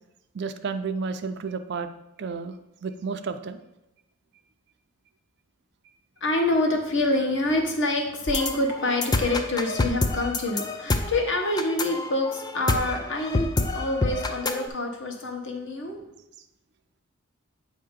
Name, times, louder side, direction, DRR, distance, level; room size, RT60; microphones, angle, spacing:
voice 1, 0.3-1.9 2.2-2.6 2.8-3.6, right 5 dB, 55° right, 8 dB, 0.4 m, -31 dB
voice 2, 6.2-16.0, left 2 dB, 60° left, 2 dB, 1.0 m, -26 dB
sound 1, 8.3-14.7, left 2 dB, 20° left, 0.3 m, -27 dB
8.0 x 2.8 x 5.1 m, 0.89 s
head